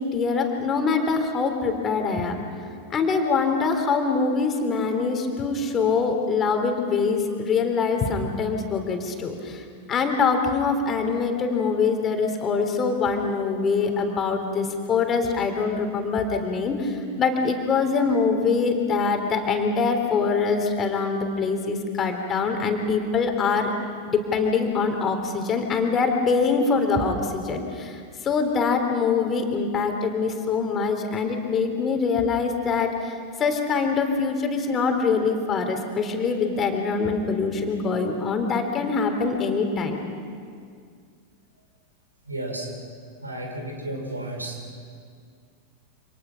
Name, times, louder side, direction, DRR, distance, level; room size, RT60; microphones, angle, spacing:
voice 1, 0.0-2.4 2.9-23.7 24.1-40.0, left 4 dB, 25° left, 5 dB, 3.5 m, -24 dB
voice 2, 42.3-42.7 43.2-44.6, right 1 dB, 80° right, 2 dB, 5.5 m, -33 dB
29.0 x 27.5 x 5.9 m, 2.2 s
figure-of-eight pair, 90°, 0 cm